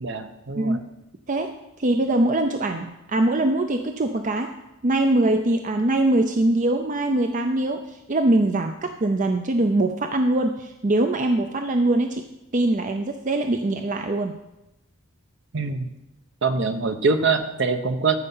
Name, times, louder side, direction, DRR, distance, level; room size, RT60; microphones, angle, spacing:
voice 1, 0.0-0.8 15.5-15.9 16.4-18.2, right 4 dB, 55° right, 8 dB, 0.9 m, -24 dB
voice 2, 1.3-4.5 4.8-12.2 12.5-14.3, right 2 dB, 35° right, 6 dB, 0.5 m, -22 dB
14.0 x 5.5 x 5.5 m, 0.93 s
head